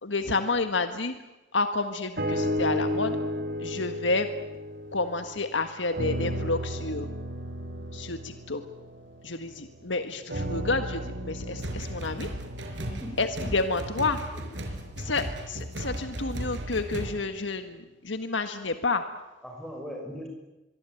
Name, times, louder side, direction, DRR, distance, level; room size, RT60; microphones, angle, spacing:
voice 1, 0.0-1.1 1.5-3.2 3.6-4.3 4.9-7.1 7.9-8.6 9.2-12.3 13.2-14.2 15.0-19.0, left 3 dB, 85° left, 8 dB, 1.7 m, -29 dB
sound 1, 2.2-5.5 5.9-9.7 10.3-14.5 15.2-15.3, equal, 55° right, 3.2 m, -33 dB
sound 2, 11.6-17.1, right 1 dB, 75° right, 5.1 m, -36 dB
voice 2, 12.8-13.1 13.4-13.8 14.7-14.8 19.4-20.3, equal, 5° left, 1 dB, 6.1 m, -40 dB
23.5 x 23.5 x 9.2 m, 1.0 s
head